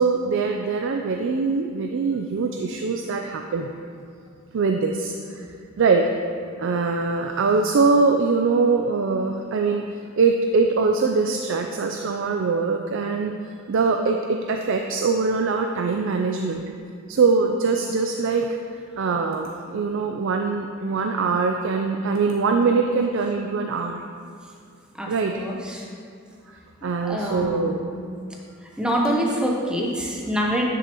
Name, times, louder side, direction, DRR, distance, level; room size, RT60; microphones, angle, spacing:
voice 1, 0.0-3.7 4.5-5.4 5.8-6.1 6.6-9.9 10.2-13.4 13.7-16.7 17.1-18.5 19.0-24.0 25.1-25.4 26.8-27.8, right 4 dB, 65° right, 3 dB, 0.4 m, -22 dB
voice 2, 25.0-25.9 27.0-27.9 28.8-30.7, equal, 5° right, -2 dB, 0.7 m, -25 dB
9.9 x 6.2 x 3.0 m, 2.3 s
head